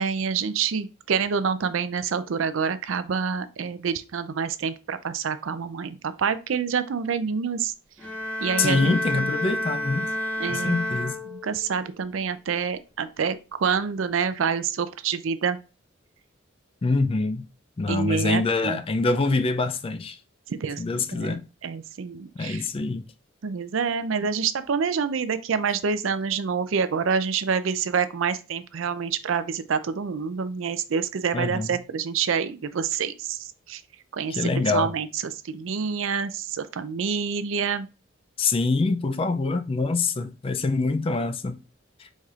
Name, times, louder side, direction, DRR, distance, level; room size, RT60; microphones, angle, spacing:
voice 1, 0.0-7.7 8.4-9.3 10.4-10.8 11.3-15.6 17.9-18.8 20.5-20.8 21.1-22.7 23.4-33.8 34.1-37.9, right 6 dB, 70° right, 0.5 m, -27 dB
sound 1, 8.0-11.8, left 1 dB, 10° left, 1.3 m, -30 dB
voice 2, 8.6-10.1 10.5-11.2 16.8-17.4 17.8-20.2 20.8-21.4 22.4-23.0 31.3-31.8 34.3-34.9 38.4-41.6 42.0-42.1, left 3 dB, 25° left, 0.3 m, -25 dB
4.9 x 4.2 x 2.4 m
head